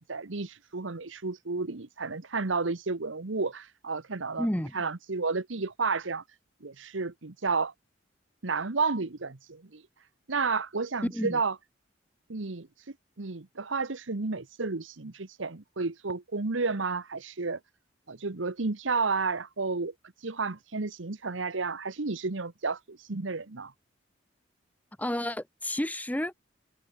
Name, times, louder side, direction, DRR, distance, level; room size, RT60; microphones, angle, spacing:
voice 1, 0.0-4.5 4.7-6.2 6.6-7.7 8.4-9.8 10.3-11.5 12.3-12.7 13.2-17.6 18.1-19.9 20.2-23.7, right 4 dB, 85° right, 1.2 m, -31 dB
voice 2, 4.4-4.8 11.1-11.4 25.0-26.3, left 1 dB, 10° left, 1.2 m, -31 dB
head